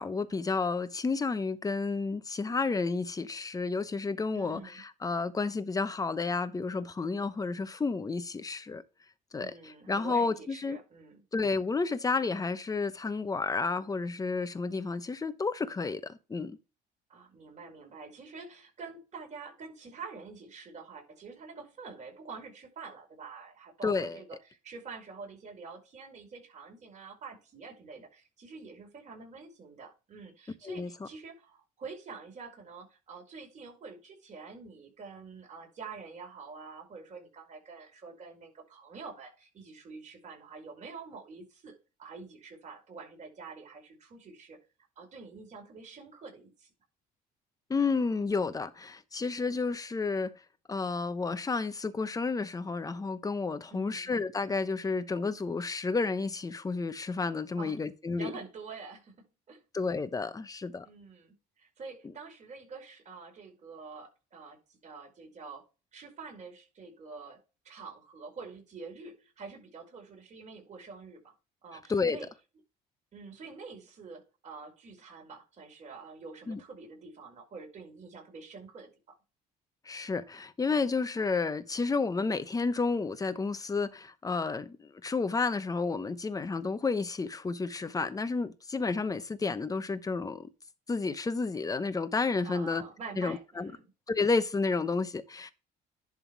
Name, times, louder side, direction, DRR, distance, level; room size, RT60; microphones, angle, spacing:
voice 1, 0.0-8.8 9.3-10.8 11.3-16.6 23.8-24.2 30.6-30.9 47.7-50.3 50.7-58.3 59.7-60.9 71.9-72.2 76.5-76.6 79.9-90.5 90.9-92.8 93.2-93.7 94.1-95.5, left 4 dB, 20° left, 0.9 m, -31 dB
voice 2, 4.3-4.8 9.4-11.2 17.1-44.6 44.9-46.7 53.7-54.1 57.6-57.8 58.2-59.6 60.8-65.6 65.9-67.4 67.6-71.3 71.6-72.3 73.1-78.9 92.4-93.8, right 4 dB, 45° right, 5.1 m, -47 dB
11.0 x 3.7 x 4.7 m
cardioid pair, 110°, 17 cm